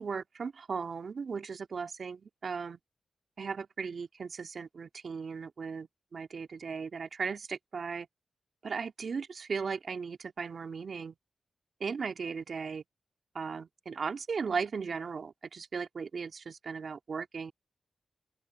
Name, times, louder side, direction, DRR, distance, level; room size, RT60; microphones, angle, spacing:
voice 1, 0.0-2.8 3.4-8.1 8.6-11.1 11.8-12.8 13.3-17.5, right 5 dB, 65° right, 2.4 m, -37 dB
cardioid pair, 50°, 0 cm